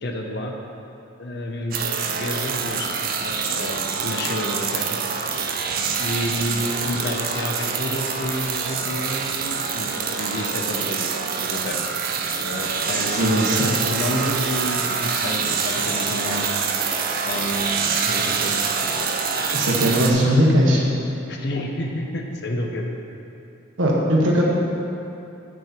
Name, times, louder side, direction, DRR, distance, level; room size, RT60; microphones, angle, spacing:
voice 1, 0.0-0.5 1.2-2.9 3.2-5.0 6.0-11.8 12.4-16.5 17.2-18.5 21.3-22.9, left 1 dB, 55° left, 1 dB, 0.9 m, -29 dB
sound 1, 1.7-20.1, right 5 dB, 45° right, 0.6 m, -25 dB
voice 2, 13.2-13.7 19.5-20.8 23.8-24.4, equal, 75° right, -3 dB, 1.4 m, -19 dB
9.1 x 6.3 x 4.4 m, 2.8 s
head